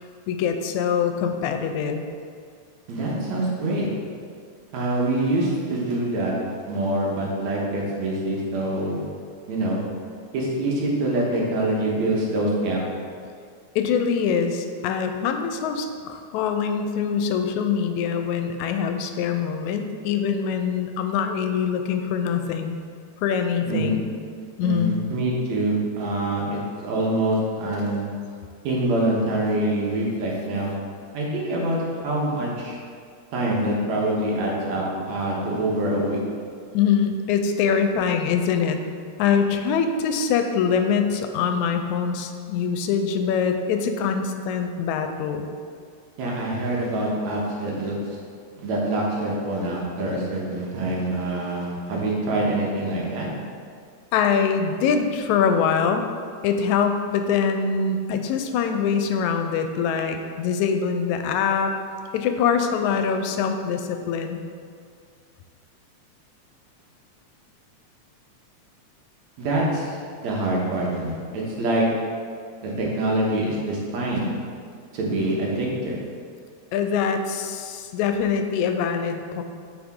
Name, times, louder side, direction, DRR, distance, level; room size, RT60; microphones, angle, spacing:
voice 1, 0.3-2.0 13.8-22.8 23.2-24.0 24.6-24.9 36.7-38.8 39.2-45.5 54.1-56.1 56.4-61.7 62.1-64.4 76.7-79.4, left 6 dB, 85° left, 6 dB, 1.9 m, -24 dB
voice 2, 2.9-3.9 4.7-6.3 6.7-9.1 9.5-9.8 10.3-12.8 23.7-23.9 24.6-28.0 28.6-30.7 31.1-31.8 32.0-32.8 33.3-36.2 46.2-48.0 48.6-53.3 69.4-71.9 72.6-74.3 74.9-76.0, right 1 dB, 75° right, -3 dB, 2.4 m, -25 dB
8.7 x 5.0 x 3.6 m, 2.1 s
omnidirectional pair, 3.3 m